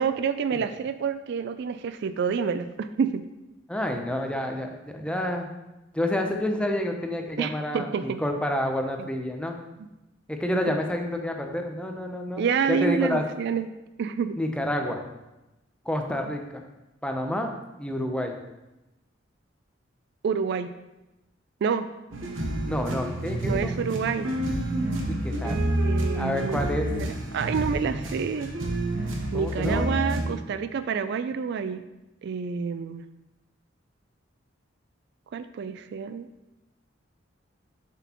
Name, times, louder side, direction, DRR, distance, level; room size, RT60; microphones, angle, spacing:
voice 1, 0.0-3.2 7.4-8.2 9.0-9.1 12.4-13.7 14.0-14.4 20.2-20.7 21.6-21.9 23.5-24.3 25.8-26.6 27.0-28.5 29.3-31.8 32.2-33.0 35.3-36.3, right 6 dB, 60° right, 11 dB, 0.3 m, -28 dB
voice 2, 3.7-5.5 5.9-9.5 10.3-13.2 14.4-15.0 15.9-16.6 17.0-17.5 17.8-18.4 22.6-23.7 25.1-25.6 26.1-26.9 29.3-29.9, left 1 dB, 5° left, 3 dB, 0.6 m, -29 dB
sound 1, 22.1-30.2, right 1 dB, 85° right, 1.0 m, -29 dB
7.0 x 6.0 x 3.0 m, 0.98 s
head